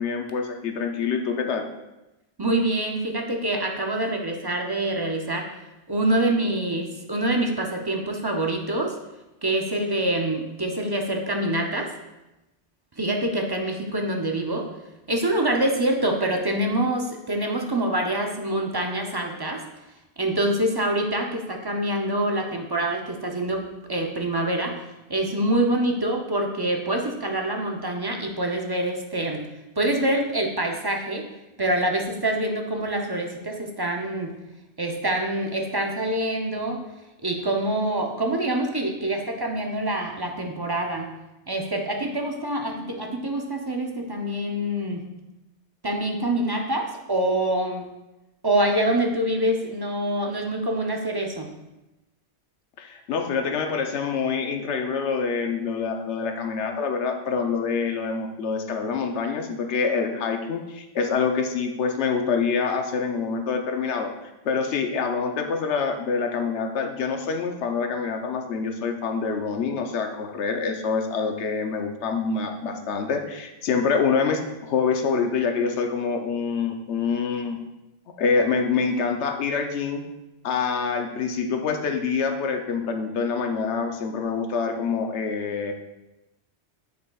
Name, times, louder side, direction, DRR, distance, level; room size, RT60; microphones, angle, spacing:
voice 1, 0.0-1.7 52.8-77.6 78.2-80.0 80.4-85.7, left 5 dB, 85° left, 5 dB, 1.0 m, -26 dB
voice 2, 2.4-5.5 5.9-9.0 9.4-11.9 13.0-14.7 15.1-19.7 20.2-29.5 29.8-31.3 31.6-34.4 34.8-36.9 37.2-41.1 41.5-45.1 45.8-47.9 48.4-51.5, right 1 dB, 30° right, 2 dB, 0.5 m, -25 dB
8.0 x 6.6 x 2.3 m, 0.97 s
omnidirectional pair, 1.1 m